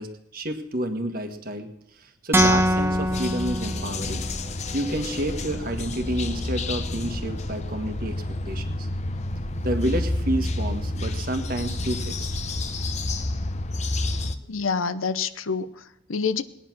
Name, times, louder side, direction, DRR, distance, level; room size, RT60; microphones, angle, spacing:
voice 1, 0.0-1.7 2.0-4.3 4.7-8.9 9.6-12.3, right 1 dB, 45° right, 6 dB, 1.6 m, -30 dB
sound 1, 2.3-4.4, right 1 dB, 10° right, 0.5 m, -23 dB
sound 2, 2.4-14.3, left 2 dB, 35° left, 0.8 m, -29 dB
voice 2, 14.5-16.4, left 5 dB, 90° left, 13 dB, 0.9 m, -27 dB
19.5 x 10.0 x 6.2 m, 0.89 s
head